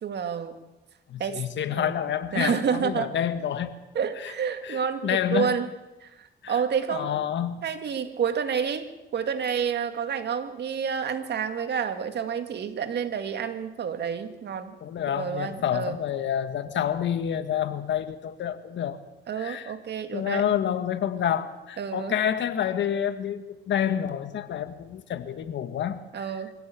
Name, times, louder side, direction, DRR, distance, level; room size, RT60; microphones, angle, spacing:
voice 1, 0.0-0.6 1.2-1.4 1.7-1.9 2.3-3.1 3.9-5.7 6.0-7.1 7.6-14.8 15.1-16.0 19.3-20.5 21.8-22.1 26.1-26.5, right 7 dB, 60° right, 8 dB, 2.3 m, -29 dB
voice 2, 1.1-3.8 4.2-4.3 4.6-5.6 6.4-6.6 6.9-7.6 14.8-19.0 19.4-19.7 20.1-26.2, left 9 dB, 70° left, 10 dB, 1.8 m, -28 dB
24.0 x 16.5 x 8.6 m, 1.0 s
cardioid pair, 90°, 20 cm